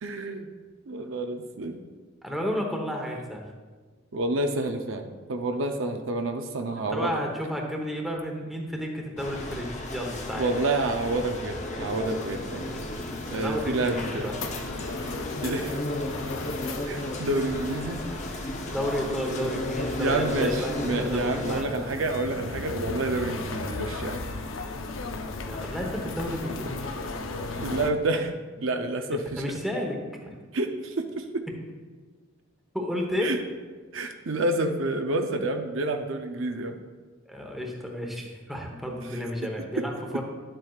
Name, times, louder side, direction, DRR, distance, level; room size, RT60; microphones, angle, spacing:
voice 1, 0.0-0.5 0.9-1.8 4.1-7.2 10.3-12.8 13.3-14.4 15.4-15.8 16.8-18.0 20.0-24.2 27.6-29.4 30.5-31.4 33.2-33.4 33.9-36.8 39.1-39.2 39.8-39.9, right 2 dB, 65° right, 5 dB, 0.6 m, -29 dB
voice 2, 2.2-3.4 6.9-10.5 12.5-12.7 13.3-14.3 18.7-21.7 25.4-26.9 29.4-30.0 30.2-30.4 32.7-33.4 37.3-40.2, equal, ahead, 0 dB, 0.9 m, -32 dB
sound 1, 9.2-21.6, left 1 dB, 35° left, 0.8 m, -34 dB
sound 2, 12.1-27.9, left 3 dB, 70° left, 0.6 m, -37 dB
11.0 x 7.7 x 2.4 m, 1.4 s
head